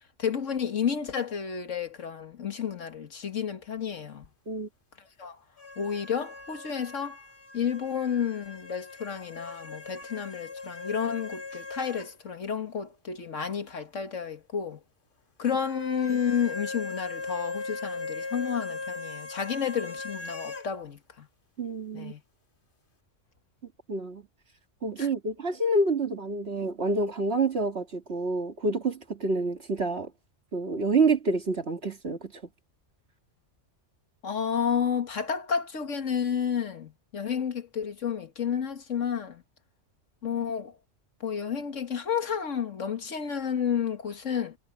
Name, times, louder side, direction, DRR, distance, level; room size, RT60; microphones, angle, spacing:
voice 1, 0.2-4.3 5.0-5.4 5.8-7.2 7.5-14.8 15.4-21.3 21.9-22.2 25.0-25.1 34.2-39.4 40.2-40.7 41.2-44.6, left 7 dB, 75° left, 1.9 m, -31 dB
sound 1, 5.6-12.1 12.4-12.5 15.6-20.7, left 3 dB, 45° left, 2.1 m, -39 dB
voice 2, 21.6-22.1 23.9-24.2 24.8-30.1 30.5-32.3, right 3 dB, 55° right, 2.3 m, -27 dB
omnidirectional pair, 1.3 m